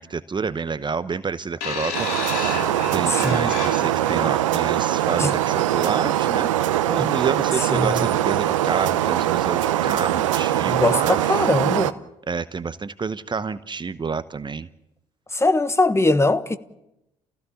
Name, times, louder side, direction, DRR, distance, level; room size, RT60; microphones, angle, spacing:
voice 1, 0.0-2.6 2.9-11.5 12.3-14.7, right 5 dB, 30° right, 0.9 m, -29 dB
sound 1, 1.6-4.2 5.1-5.2, left 6 dB, 70° left, 2.7 m, -31 dB
sound 2, 1.9-11.9, right 12 dB, 80° right, 0.7 m, -22 dB
voice 2, 3.1-3.5 5.2-5.3 7.0-7.1 7.7-8.1 10.7-11.9 15.3-16.6, left 2 dB, 15° left, 1.3 m, -21 dB
30.0 x 16.0 x 7.2 m
hypercardioid pair, 50°, 16 cm